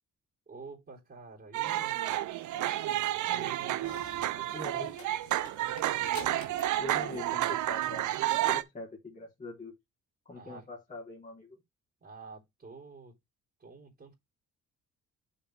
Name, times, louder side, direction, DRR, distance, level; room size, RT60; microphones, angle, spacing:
voice 1, 0.5-2.7 3.3-4.9 10.3-10.7 12.0-13.2 13.6-14.1, right 4 dB, 35° right, 3.9 m, -49 dB
sound 1, 1.5-8.6, right 14 dB, 75° right, 0.7 m, -31 dB
sound 2, 3.8-8.1, left 6 dB, 75° left, 3.3 m, -51 dB
voice 2, 4.5-5.0 6.8-9.7 10.3-11.6, left 2 dB, 25° left, 3.5 m, -43 dB
7.2 x 7.0 x 3.4 m
cardioid pair, 90°, 30 cm